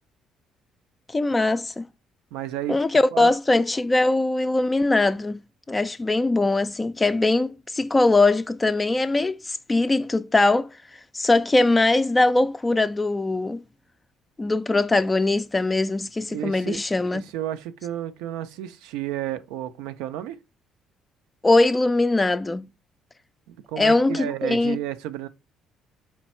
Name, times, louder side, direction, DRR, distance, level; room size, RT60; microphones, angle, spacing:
voice 1, 1.1-1.9 2.7-5.4 5.7-10.7 11.1-13.6 14.4-17.2 21.4-22.7 23.8-24.8, left 2 dB, 20° left, 0.3 m, -21 dB
voice 2, 2.3-2.8 3.1-3.3 16.3-16.8 17.1-20.4 23.5-25.3, right 12 dB, 85° right, 0.4 m, -32 dB
4.4 x 2.4 x 4.2 m
supercardioid pair, 70°, 0 cm